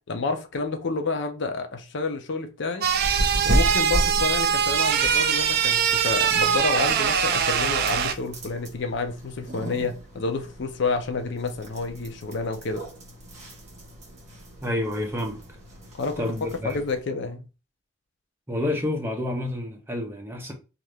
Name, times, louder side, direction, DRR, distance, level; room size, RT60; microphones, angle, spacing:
voice 1, 0.1-2.9 3.4-12.8 16.0-16.2 16.6-17.4, left 3 dB, 60° left, 0.5 m, -29 dB
sound 1, 2.8-17.0, equal, 35° right, 1.0 m, -34 dB
sound 2, 2.8-8.1, right 8 dB, 50° right, 0.4 m, -22 dB
voice 2, 14.6-15.4 16.2-16.8 18.5-20.5, left 1 dB, 10° right, 0.7 m, -29 dB
2.8 x 2.5 x 3.3 m
head